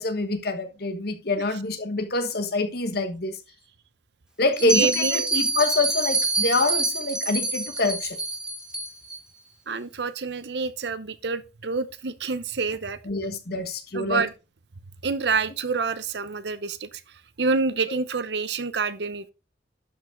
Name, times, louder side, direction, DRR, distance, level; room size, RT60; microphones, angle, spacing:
voice 1, 0.0-3.4 4.4-8.2 13.0-14.3 17.9-18.0, left 2 dB, 60° left, 1.3 m, -26 dB
Bell, 4.5-9.2, right 2 dB, 5° right, 1.4 m, -26 dB
voice 2, 4.6-5.2 9.7-13.0 13.9-14.3 15.0-17.0 17.4-19.2, right 4 dB, 65° right, 0.8 m, -27 dB
11.5 x 5.4 x 3.7 m
head